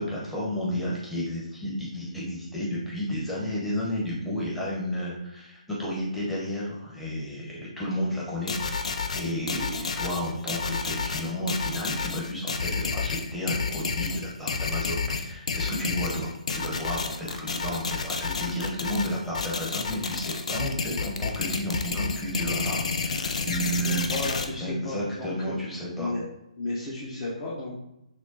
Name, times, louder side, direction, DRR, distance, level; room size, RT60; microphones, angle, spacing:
voice 1, 0.0-24.1 24.6-26.1, equal, 5° left, -7 dB, 1.0 m, -32 dB
sound 1, 8.5-24.4, left 5 dB, 60° left, 0.5 m, -30 dB
voice 2, 23.8-25.6 26.0-26.2 26.6-27.8, left 2 dB, 35° left, -7 dB, 1.0 m, -33 dB
6.2 x 2.2 x 2.8 m, 0.86 s
figure-of-eight pair, 135°, 4 cm